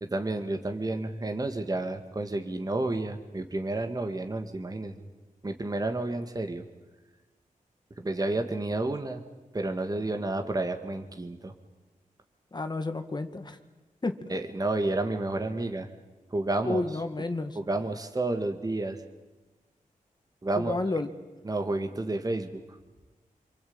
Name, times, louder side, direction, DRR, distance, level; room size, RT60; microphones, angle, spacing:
voice 1, 0.0-5.0 5.4-6.6 8.0-9.2 9.5-11.5 14.3-15.9 16.3-16.8 17.6-19.0 20.4-20.8 21.5-22.6, right 2 dB, 25° right, 6 dB, 1.9 m, -30 dB
voice 2, 12.5-13.6 14.0-14.2 16.6-17.6 20.6-21.1, left 2 dB, 30° left, 7 dB, 1.9 m, -31 dB
27.0 x 25.0 x 8.8 m, 1.2 s
wide cardioid pair, 85°, 14 cm